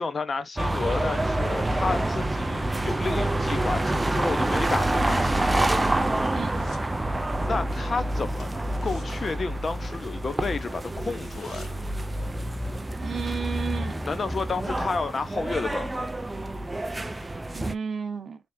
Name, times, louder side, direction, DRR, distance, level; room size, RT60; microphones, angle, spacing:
voice 1, 0.0-5.7 7.4-11.8 14.0-16.1, left 4 dB, 30° left, 0.6 m, -31 dB
sound 1, 0.6-17.7, right 1 dB, 10° right, 0.3 m, -27 dB
sound 2, 6.2-7.0 7.2-7.5 7.8-7.9 8.3-10.2 10.5-10.6 10.9-12.0 12.3-12.4, left 3 dB, 90° left, 1.9 m, -53 dB
voice 2, 13.0-14.0 17.5-18.4, right 6 dB, 40° right, 0.8 m, -32 dB
3.4 x 3.2 x 2.6 m
wide cardioid pair, 165°, 0 cm